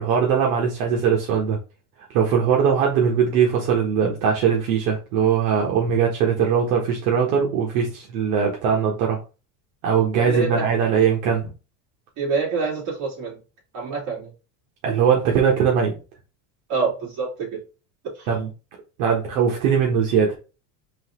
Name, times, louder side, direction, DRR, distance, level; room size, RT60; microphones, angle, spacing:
voice 1, 0.0-1.6 2.1-9.2 9.8-11.5 14.8-15.9 18.3-18.5 19.0-20.3, right 7 dB, 70° right, -1 dB, 1.3 m, -20 dB
voice 2, 10.2-10.7 12.2-13.4 13.7-14.3 16.7-17.6 18.2-18.3, right 4 dB, 40° right, -4 dB, 2.5 m, -26 dB
4.0 x 2.9 x 3.6 m, 0.32 s
cardioid pair, 175°, 46 cm